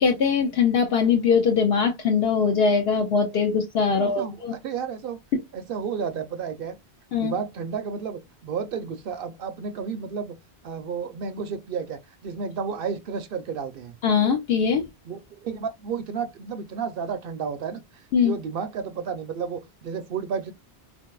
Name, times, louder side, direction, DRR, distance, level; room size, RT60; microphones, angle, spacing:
voice 1, 0.0-4.5 5.3-5.4 7.1-7.3 14.0-14.9 18.1-18.4, left 6 dB, 65° left, 0.8 m, -21 dB
voice 2, 3.9-4.4 4.6-5.2 5.5-6.8 7.2-10.4 10.6-14.0 15.1-17.8 18.2-20.5, right 6 dB, 65° right, 0.7 m, -32 dB
3.5 x 2.6 x 2.2 m
omnidirectional pair, 1.1 m